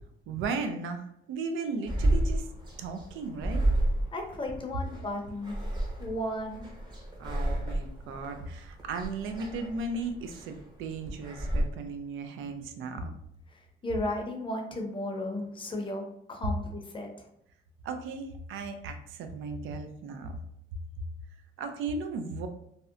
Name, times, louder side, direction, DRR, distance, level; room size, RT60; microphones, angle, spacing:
voice 1, 0.3-2.5 2.8-3.6 7.2-13.1 17.8-20.4 21.6-22.5, right 4 dB, 80° right, 6 dB, 0.4 m, -36 dB
sound 1, 1.9-11.7, right 1 dB, 20° right, 0.8 m, -31 dB
voice 2, 4.1-5.6 6.0-6.7 13.5-16.0 16.3-17.3, left 1 dB, 25° left, 2 dB, 0.6 m, -34 dB
2.7 x 2.1 x 2.4 m, 0.75 s
cardioid pair, 90°, 20 cm